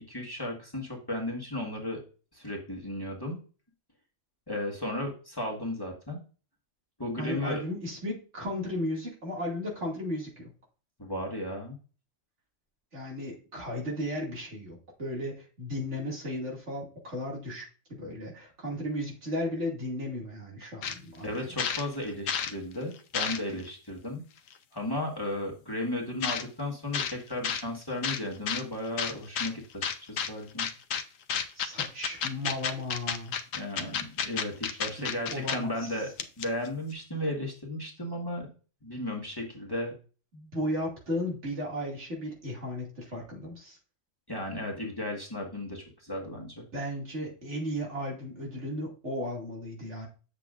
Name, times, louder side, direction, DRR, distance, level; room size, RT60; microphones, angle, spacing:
voice 1, 0.0-2.0 2.3-3.4 4.5-6.2 7.0-7.6 11.0-11.8 20.6-20.7 21.2-24.2 24.7-30.7 33.5-36.1 36.4-38.5 38.8-39.9 44.3-46.6, left 1 dB, 20° left, -1 dB, 1.5 m, -35 dB
voice 2, 7.2-10.5 12.9-21.5 31.5-33.4 34.7-36.0 40.3-43.8 46.7-50.1, left 1 dB, 65° right, -2 dB, 2.6 m, -35 dB
sound 1, 20.8-21.0 21.3-22.5 22.9-23.7 24.5-24.6 26.2-26.5 26.9-27.1 27.4-27.6 28.0-28.6 29.0-29.5 29.8-30.3 30.6-31.0 31.3-35.6 35.9-36.0 36.2-36.7, left 7 dB, 85° left, 1.1 m, -31 dB
7.8 x 6.7 x 2.5 m, 0.36 s
omnidirectional pair, 1.3 m